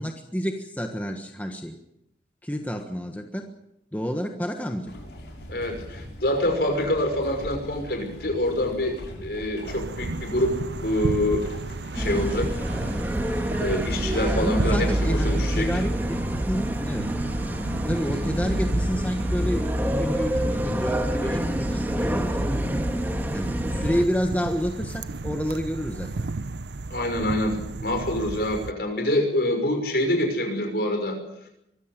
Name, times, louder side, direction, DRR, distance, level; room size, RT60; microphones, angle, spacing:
voice 1, 0.0-1.8 2.4-3.5 3.9-4.9 14.1-17.1 17.8-26.3, equal, 10° left, 5 dB, 1.4 m, -30 dB
sound 1, 4.8-14.3, left 1 dB, 75° left, 6.5 m, -41 dB
voice 2, 5.5-10.6 10.8-11.4 11.9-12.6 13.6-15.8 26.9-27.6 27.8-31.2, left 1 dB, 55° left, 5 dB, 6.0 m, -26 dB
sound 2, 9.6-28.7, right 2 dB, 70° right, 0.8 m, -34 dB
sound 3, 12.0-24.0, equal, 10° right, 1.7 m, -27 dB
23.5 x 15.0 x 9.0 m, 0.82 s
head